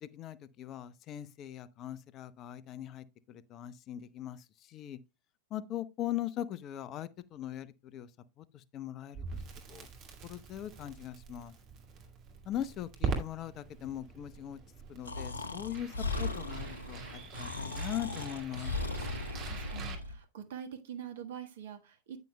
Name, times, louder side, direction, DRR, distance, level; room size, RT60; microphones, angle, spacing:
voice 1, 0.0-5.0 5.5-8.1 8.4-9.4 9.7-9.9 10.2-11.5 12.5-14.6 14.9-18.7, left 12 dB, 35° left, 0.6 m, -40 dB
Crackle, 9.1-20.0, right 4 dB, 35° right, 2.1 m, -43 dB
Breathing, 15.0-20.2, left 3 dB, 75° left, 0.9 m, -37 dB
voice 2, 19.4-22.2, right 9 dB, 60° right, 1.4 m, -44 dB
9.1 x 9.1 x 2.2 m
figure-of-eight pair, 90°, 0 cm